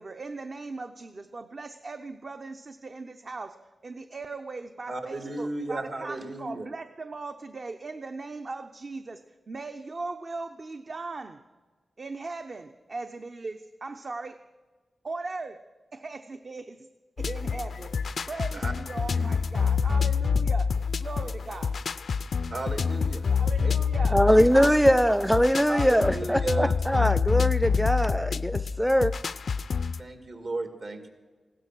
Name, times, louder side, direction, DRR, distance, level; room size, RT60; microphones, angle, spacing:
voice 1, 0.0-11.4 12.0-14.4 15.0-15.6 15.9-16.9 17.2-17.9 18.3-20.7 21.0-21.8 23.3-24.2 24.5-25.3, right 3 dB, 55° right, 6 dB, 0.7 m, -39 dB
voice 2, 4.9-6.7 18.5-18.7 19.1-19.4 22.5-23.2 23.6-23.7 24.3-24.4 25.7-26.8 30.0-31.1, right 2 dB, 70° right, 6 dB, 2.2 m, -34 dB
sound 1, 17.2-30.0, left 5 dB, 70° left, 0.4 m, -27 dB
voice 3, 24.1-29.1, equal, ahead, 15 dB, 0.4 m, -22 dB
16.0 x 12.5 x 6.2 m, 1.3 s
cardioid pair, 45°, 0 cm